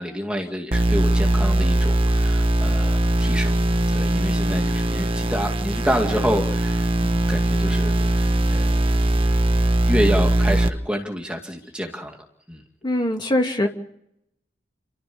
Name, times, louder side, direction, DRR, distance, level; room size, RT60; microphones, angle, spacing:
voice 1, 0.0-3.6 3.9-8.8 9.9-12.2 12.5-12.6, equal, 5° right, 2 dB, 2.2 m, -28 dB
sound 1, 0.7-10.7, right 1 dB, 30° right, 1.2 m, -20 dB
voice 2, 12.8-13.7, left 1 dB, 25° left, 3 dB, 2.6 m, -22 dB
30.0 x 12.5 x 7.0 m, 0.74 s
head